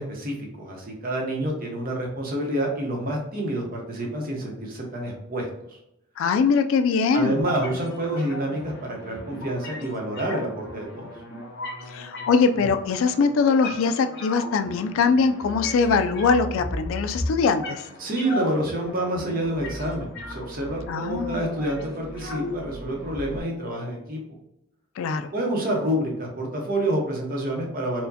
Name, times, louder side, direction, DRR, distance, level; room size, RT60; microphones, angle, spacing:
voice 1, 0.0-5.5 7.1-11.1 18.0-24.2 25.3-28.1, right 1 dB, 45° right, 0 dB, 0.8 m, -28 dB
voice 2, 6.2-7.4 11.9-17.8 20.9-21.4 25.0-25.3, left 5 dB, 70° left, 9 dB, 0.3 m, -22 dB
sound 1, 7.4-23.4, left 1 dB, 55° left, 0.8 m, -36 dB
4.5 x 2.1 x 2.7 m, 0.83 s
head